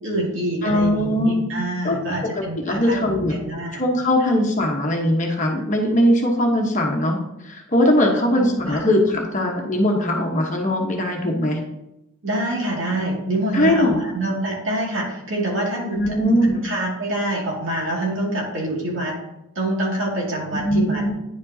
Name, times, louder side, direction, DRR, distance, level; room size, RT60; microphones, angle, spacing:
voice 1, 0.0-3.0 3.3-3.8 8.1-8.9 12.2-16.0 16.6-19.2 19.6-21.0, right 1 dB, 65° right, -3 dB, 2.2 m, -26 dB
voice 2, 0.6-1.5 1.8-2.3 2.6-3.3 3.8-7.2 7.4-11.6 13.5-14.0 15.9-16.7 20.6-21.1, left 1 dB, 35° left, 0 dB, 1.1 m, -20 dB
10.0 x 5.2 x 2.7 m, 0.89 s
head